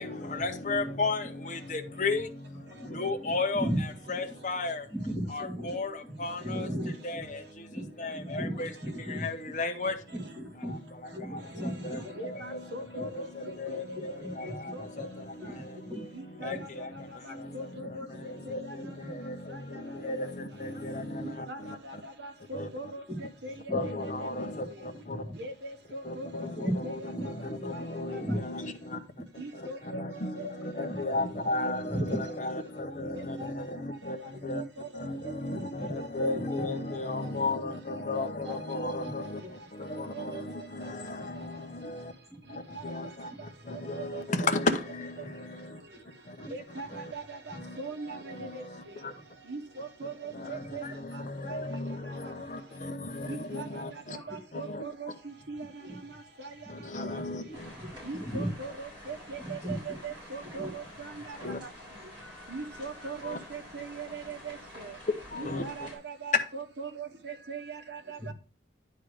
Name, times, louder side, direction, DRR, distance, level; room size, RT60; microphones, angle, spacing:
voice 1, 0.0-3.7 4.1-4.9 5.3-6.7 7.0-8.7 9.0-10.1 10.6-22.0 22.5-22.7 23.7-25.2 26.0-27.0 27.2-29.0 29.3-34.6 34.9-42.1 42.5-45.8 46.2-47.1 47.5-47.8 48.1-49.1 50.3-54.2 54.5-54.8 56.7-57.7 61.4-61.6 63.2-63.4 65.3-65.9, left 2 dB, 40° left, 0.9 m, -35 dB
voice 2, 2.7-4.2 4.9-5.8 6.0-6.1 6.4-7.2 7.7-9.6 10.1-10.8 11.1-12.3 13.9-15.1 15.4-16.0 16.4-16.6 23.7-24.0 24.4-24.7 25.1-25.3 26.5-26.7 27.1-27.9 28.2-28.4 30.3-30.5 30.9-31.0 31.3-31.4 31.8-32.2 35.5-35.9 39.1-39.2 41.2-41.3 43.3-43.4 43.8-43.9 44.3-44.4 46.9-47.0 51.3-51.6 54.2-54.3 55.8-56.0 56.7-57.4 57.8-58.5 59.4-60.0 60.6-60.7 68.2-68.3, equal, ahead, 2.7 m, -37 dB
voice 3, 12.2-15.1 16.1-16.7 17.2-18.1 18.5-18.7 19.5-19.6 21.2-24.5 25.4-26.9 27.2-27.3 27.7-27.8 28.1-28.4 29.4-30.4 31.4-31.5 32.2-32.3 33.1-33.5 34.2-35.1 36.2-36.6 38.4-38.6 40.1-40.4 42.7-42.8 43.9-44.2 46.5-48.9 49.5-50.8 51.1-51.5 52.1-52.2 53.3-53.7 54.1-55.8 56.4-56.5 58.0-61.4 62.5-65.0 65.3-68.3, right 3 dB, 60° right, 1.1 m, -41 dB
sound 1, 57.5-66.0, left 1 dB, 25° right, 4.6 m, -48 dB
10.5 x 3.8 x 4.9 m
head